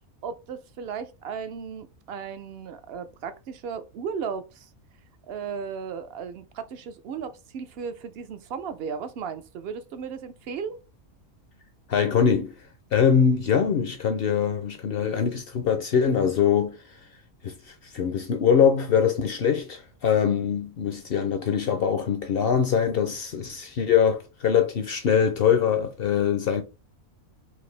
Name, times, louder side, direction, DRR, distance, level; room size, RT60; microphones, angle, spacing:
voice 1, 0.2-4.7 5.3-10.8, right 6 dB, 65° right, 0.6 m, -35 dB
voice 2, 11.9-12.5 12.9-16.9 17.4-26.6, left 7 dB, 60° left, 0.6 m, -23 dB
4.7 x 2.5 x 3.2 m
omnidirectional pair, 1.4 m